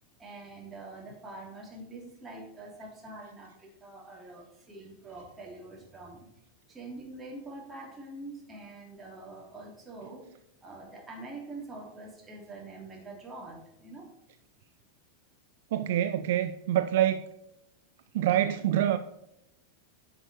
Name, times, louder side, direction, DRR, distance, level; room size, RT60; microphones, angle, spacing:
voice 1, 0.2-6.3 6.7-10.3 10.6-14.1, right 2 dB, 15° right, -2 dB, 3.3 m, -45 dB
voice 2, 15.7-17.2 18.1-19.0, right 11 dB, 55° right, 10 dB, 0.5 m, -26 dB
10.5 x 6.0 x 4.5 m, 0.84 s
figure-of-eight pair, 90°, 0 cm